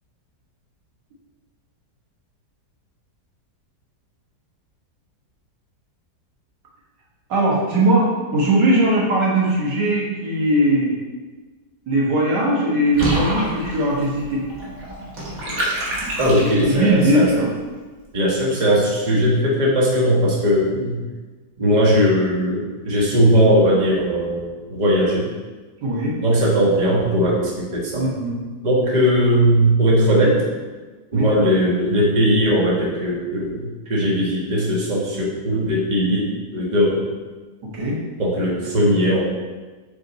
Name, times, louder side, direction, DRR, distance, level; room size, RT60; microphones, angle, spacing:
voice 1, 7.3-10.9 11.9-14.5 16.4-17.5 20.7-20.8 25.8-26.1 27.9-28.4 31.1-31.3 37.7-38.0, right 1 dB, 90° right, -4 dB, 2.0 m, -19 dB
Water / Bathtub (filling or washing), 12.9-17.0, right 1 dB, 55° right, 1.8 m, -27 dB
voice 2, 16.2-17.3 18.1-21.0 21.6-25.3 26.2-28.1 28.6-30.5 31.1-37.0 38.2-39.2, equal, 30° right, -4 dB, 1.4 m, -19 dB
6.5 x 4.2 x 4.2 m, 1.3 s
omnidirectional pair, 1.8 m